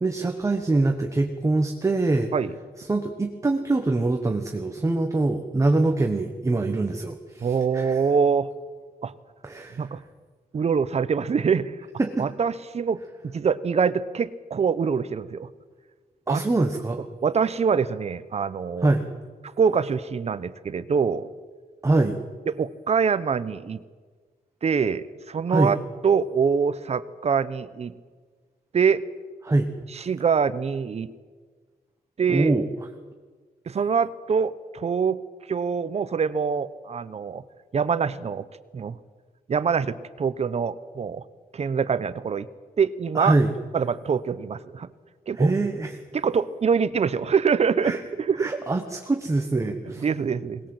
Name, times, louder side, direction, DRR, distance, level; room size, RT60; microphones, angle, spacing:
voice 1, 0.0-2.3 2.8-8.0 9.4-9.9 12.0-12.3 16.3-17.0 18.8-19.1 21.8-22.2 25.5-25.7 29.4-29.7 32.3-32.7 43.1-43.5 45.3-46.0 47.8-48.0 48.4-50.0, right 2 dB, 20° right, 4 dB, 1.3 m, -24 dB
voice 2, 7.4-8.5 9.0-9.1 9.8-10.0 10.5-11.7 12.2-15.5 16.3-16.4 17.2-18.9 19.6-21.3 22.6-23.8 24.6-25.8 26.0-27.9 28.7-29.0 29.9-31.1 32.2-32.5 33.7-35.2 35.5-37.4 37.7-38.5 38.7-39.0 39.5-41.2 41.5-42.5 42.8-43.3 43.7-44.9 45.3-45.5 46.1-48.5 50.0-50.6, right 6 dB, 40° right, 15 dB, 0.9 m, -24 dB
22.0 x 19.5 x 7.9 m, 1.5 s
wide cardioid pair, 175°, 16 cm